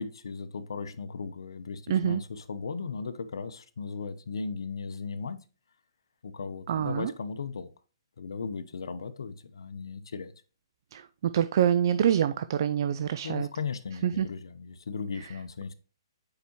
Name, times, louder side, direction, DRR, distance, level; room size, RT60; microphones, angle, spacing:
voice 1, 0.0-5.4 6.2-7.7 8.2-10.3 13.2-15.7, left 5 dB, 75° left, 11 dB, 0.7 m, -36 dB
voice 2, 1.9-2.2 6.7-7.1 10.9-13.5 14.0-14.3, right 9 dB, 55° right, 13 dB, 0.3 m, -26 dB
6.8 x 4.8 x 3.0 m, 0.35 s
hypercardioid pair, 140°, 2 cm